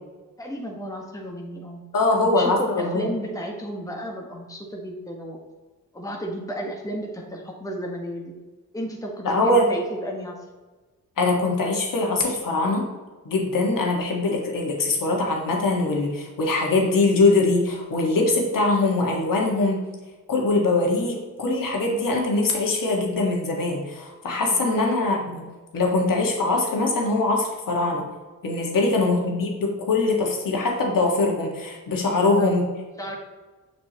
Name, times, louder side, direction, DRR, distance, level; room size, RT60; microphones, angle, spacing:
voice 1, 0.4-1.8 2.1-5.4 5.9-8.3 8.7-10.4 24.5-25.0 28.7-29.2 32.2-32.5 33.0-33.2, equal, 10° left, 0 dB, 1.4 m, -33 dB
voice 2, 1.9-3.1 9.2-9.6 11.2-12.9 13.2-19.8 20.3-25.4 25.7-28.0 28.4-32.6, left 2 dB, 65° left, -1 dB, 1.7 m, -22 dB
7.2 x 5.2 x 2.9 m, 1.3 s
supercardioid pair, 50°, 36 cm